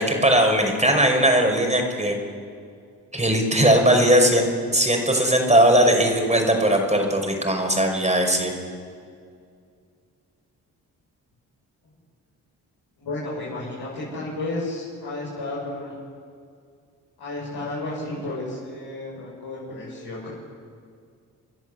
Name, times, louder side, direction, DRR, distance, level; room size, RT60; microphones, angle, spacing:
voice 1, 0.0-2.2 3.1-8.5, right 1 dB, 15° right, 3 dB, 5.8 m, -19 dB
voice 2, 13.0-15.9 17.2-20.3, left 2 dB, 70° left, -7 dB, 6.8 m, -32 dB
30.0 x 10.5 x 8.4 m, 2.2 s
hypercardioid pair, 45°, 42 cm